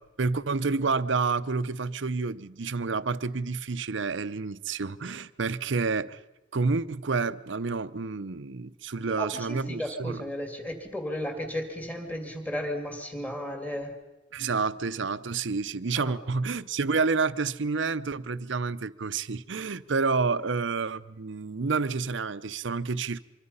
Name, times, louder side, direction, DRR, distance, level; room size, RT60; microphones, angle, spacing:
voice 1, 0.0-6.2 6.5-10.2 14.3-23.2, right 4 dB, 70° right, 0.7 m, -29 dB
voice 2, 9.2-14.0 16.0-16.2 16.5-16.6 20.3-20.4, equal, 10° left, 2.4 m, -34 dB
25.5 x 23.0 x 5.6 m
head